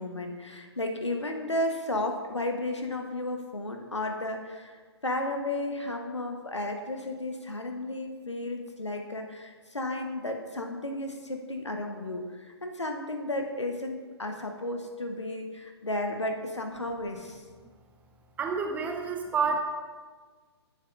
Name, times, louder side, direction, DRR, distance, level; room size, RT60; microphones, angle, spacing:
voice 1, 0.0-17.4, left 1 dB, 85° left, 4 dB, 1.0 m, -33 dB
voice 2, 18.4-19.6, right 5 dB, 10° right, 3 dB, 0.4 m, -28 dB
13.5 x 7.2 x 2.5 m, 1.5 s
figure-of-eight pair, 125°, 15 cm